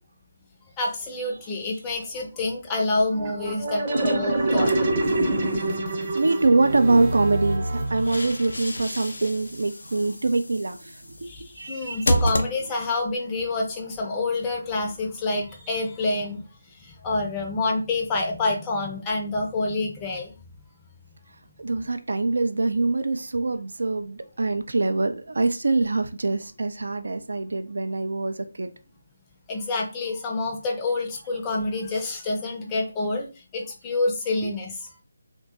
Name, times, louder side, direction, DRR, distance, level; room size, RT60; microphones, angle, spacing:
voice 1, 0.8-4.7 11.2-16.4 16.8-20.3 29.5-33.3 33.5-34.9, left 2 dB, 15° left, 1 dB, 0.5 m, -27 dB
sound 1, 3.1-8.5, right 2 dB, 30° right, 0.8 m, -26 dB
sound 2, 4.6-5.7 7.7-13.1, equal, 65° left, 0.5 m, -31 dB
voice 2, 6.1-11.3 11.6-12.1 21.6-28.7, right 3 dB, 60° right, 8 dB, 0.3 m, -24 dB
3.1 x 2.1 x 2.8 m, 0.33 s
figure-of-eight pair, 150°, 0 cm